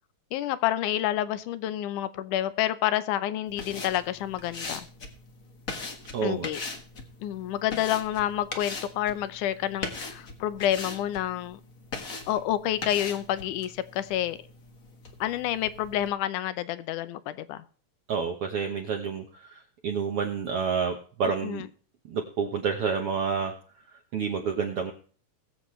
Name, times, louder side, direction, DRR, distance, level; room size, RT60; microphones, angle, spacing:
voice 1, 0.3-4.9 6.2-6.6 7.2-11.6 12.3-14.4 15.2-17.6 21.4-21.7, left 12 dB, 75° left, 2.1 m, -29 dB
sound 1, 3.5-16.1, left 3 dB, 40° left, 1.1 m, -41 dB
voice 2, 6.1-6.5 18.1-21.6 22.1-23.5 23.9-24.9, right 6 dB, 65° right, 1.5 m, -29 dB
21.0 x 7.8 x 3.2 m
omnidirectional pair, 3.9 m